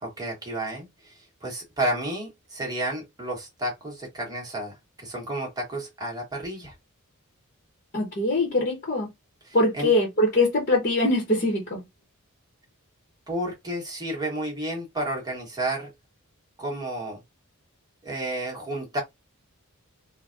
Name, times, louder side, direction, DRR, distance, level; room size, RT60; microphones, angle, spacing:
voice 1, 0.0-1.1 1.4-6.7 9.4-9.9 13.3-15.9 16.6-17.2 18.0-19.0, right 1 dB, 20° right, 1.1 m, -31 dB
voice 2, 7.9-9.1 9.5-11.8, left 2 dB, 40° left, 1.0 m, -23 dB
3.8 x 2.2 x 2.5 m
head